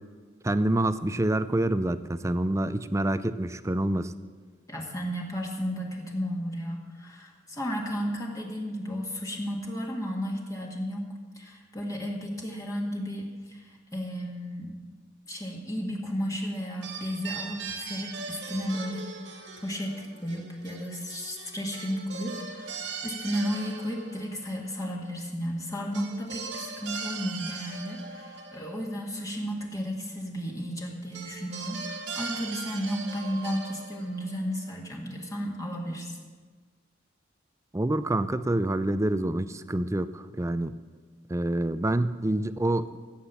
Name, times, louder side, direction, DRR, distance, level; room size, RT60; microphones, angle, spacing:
voice 1, 0.4-4.1 37.7-40.7 41.3-43.0, right 1 dB, 15° right, 13 dB, 0.5 m, -27 dB
voice 2, 4.7-11.0 11.4-14.7 15.3-19.1 19.6-36.2, equal, 20° left, -1 dB, 1.9 m, -33 dB
sound 1, 16.8-24.6 25.9-29.4 31.1-34.5, right 4 dB, 70° right, 1.8 m, -40 dB
16.0 x 8.8 x 7.2 m, 1.5 s
head